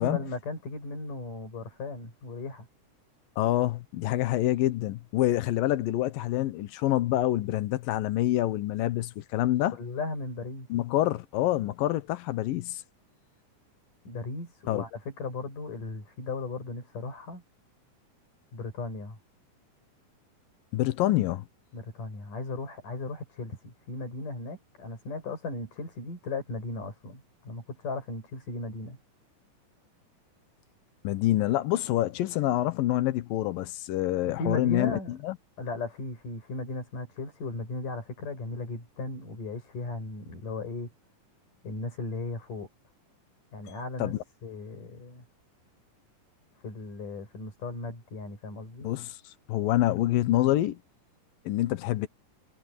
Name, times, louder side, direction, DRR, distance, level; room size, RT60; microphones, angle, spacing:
voice 1, 0.0-2.7 9.7-10.7 14.0-17.4 18.5-19.2 21.7-29.0 34.2-35.2 35.6-40.9 41.6-42.7 43.5-44.1 44.4-45.2 46.6-48.9, left 3 dB, 65° left, 8.1 m, -36 dB
voice 2, 3.4-9.8 10.7-12.8 14.7-14.8 20.7-21.4 31.0-35.4 44.0-44.2 48.8-49.2 49.5-50.8 51.5-52.1, left 15 dB, 85° left, 2.8 m, -26 dB
omnidirectional pair, 3.9 m